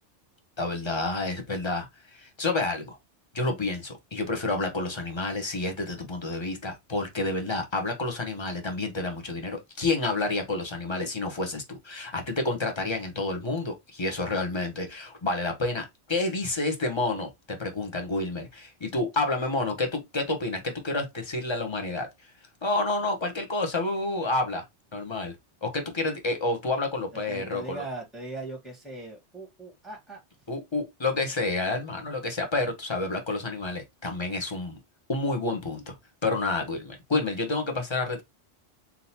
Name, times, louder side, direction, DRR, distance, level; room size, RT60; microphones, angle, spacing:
voice 1, 0.6-3.0 3.3-22.1 22.6-24.6 24.9-25.3 25.6-27.8 30.5-34.8 35.1-35.9 36.2-38.2, left 2 dB, 25° left, 1.1 m, -29 dB
voice 2, 27.1-30.2, right 2 dB, ahead, 1.5 m, -39 dB
4.2 x 3.8 x 2.8 m
omnidirectional pair, 1.2 m